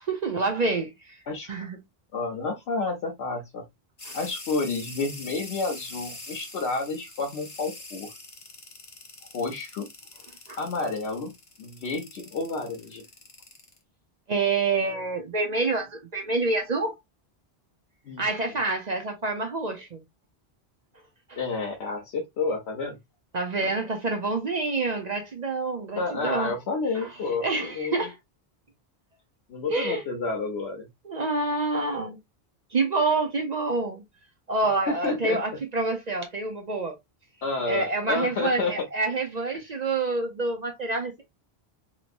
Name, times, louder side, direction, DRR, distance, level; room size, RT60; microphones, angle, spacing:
voice 1, 0.1-1.2 1.5-1.8 4.1-4.2 10.5-10.6 14.3-16.9 18.2-20.0 21.3-21.4 23.3-26.5 27.0-27.1 27.4-28.2 29.7-30.0 31.0-32.2 32.7-34.0 34.5-37.0 37.7-41.3, right 3 dB, 45° right, 0.7 m, -27 dB
voice 2, 2.1-3.6 4.1-8.1 9.3-9.9 10.6-11.3 11.6-13.1 18.0-18.3 21.4-23.0 26.0-28.1 29.5-30.9 34.9-35.4 37.4-38.9, left 3 dB, 85° left, 1.0 m, -30 dB
sound 1, 4.0-13.8, left 2 dB, 35° left, 0.8 m, -43 dB
3.0 x 2.9 x 2.5 m
omnidirectional pair, 1.1 m